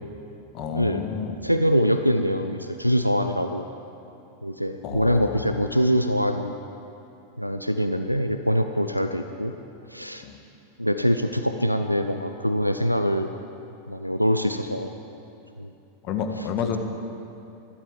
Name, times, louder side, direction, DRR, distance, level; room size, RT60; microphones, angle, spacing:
voice 1, 0.5-1.5 4.8-5.7 10.2-10.4 16.0-16.8, left 7 dB, 40° left, 5 dB, 1.5 m, -30 dB
voice 2, 1.4-3.7 4.4-6.5 7.4-9.5 9.9-10.2 10.8-13.3 13.9-15.0 15.6-15.7, equal, 90° left, 7 dB, 0.5 m, -24 dB
13.5 x 12.5 x 7.4 m, 2.7 s
figure-of-eight pair, 90°, 0 cm